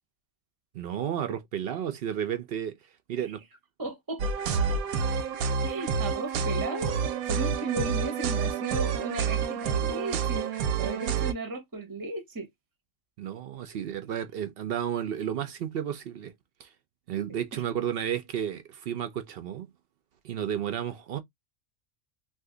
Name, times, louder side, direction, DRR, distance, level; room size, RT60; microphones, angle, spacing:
voice 1, 0.7-3.4 13.2-16.3 16.6-16.7 17.1-19.7 20.2-21.2, right 9 dB, 70° right, 0.5 m, -32 dB
voice 2, 3.8-4.2 5.6-7.0 7.3-12.5 17.5-17.6, right 2 dB, 25° right, 0.5 m, -35 dB
sound 1, 4.2-11.3, right 6 dB, 85° right, 1.1 m, -28 dB
2.7 x 2.4 x 3.7 m
omnidirectional pair, 1.5 m